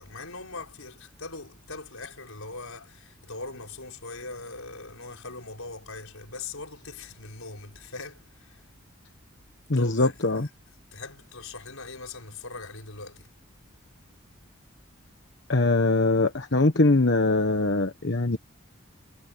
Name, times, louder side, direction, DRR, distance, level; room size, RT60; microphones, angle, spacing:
voice 1, 0.0-8.6 9.7-10.5 10.9-13.3, left 3 dB, 85° left, 5.7 m, -41 dB
voice 2, 9.7-10.5 15.5-18.4, left 2 dB, 55° left, 1.2 m, -22 dB
head